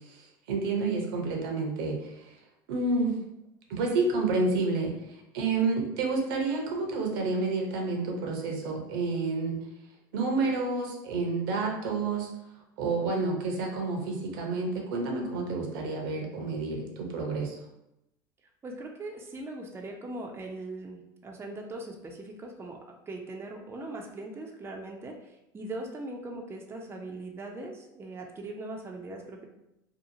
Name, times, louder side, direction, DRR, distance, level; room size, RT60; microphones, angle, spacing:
voice 1, 0.0-2.4 2.7-3.2 3.7-9.6 10.1-12.3 12.8-17.6, right 3 dB, 70° right, 1 dB, 0.7 m, -29 dB
voice 2, 18.6-22.8 23.1-29.5, right 2 dB, 20° right, 1 dB, 0.5 m, -40 dB
2.7 x 2.4 x 2.7 m, 0.85 s
hypercardioid pair, 80°, 12 cm